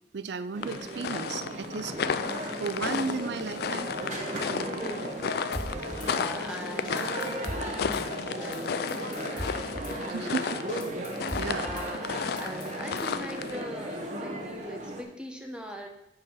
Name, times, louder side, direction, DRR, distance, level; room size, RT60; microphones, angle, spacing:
voice 1, 0.1-2.0 2.6-3.9 10.0-10.6 11.4-11.7, right 4 dB, 70° right, 12 dB, 0.5 m, -34 dB
sound 1, 0.5-15.0, right 1 dB, 45° right, 1.2 m, -36 dB
sound 2, 0.6-13.6, left 6 dB, 60° left, 0.3 m, -34 dB
voice 2, 4.8-5.7 6.0-7.4 7.7-7.8 8.3-9.7 10.0-10.5 11.3-15.9, equal, 5° right, 3 dB, 1.0 m, -41 dB
Drum kit / Snare drum, 5.5-6.1 6.5-6.6 6.8-8.0 8.4-8.6 8.9-9.9 10.3-10.4 10.7-11.9 12.2-13.2, equal, 25° left, 1.9 m, -39 dB
8.4 x 4.8 x 5.6 m, 0.85 s
head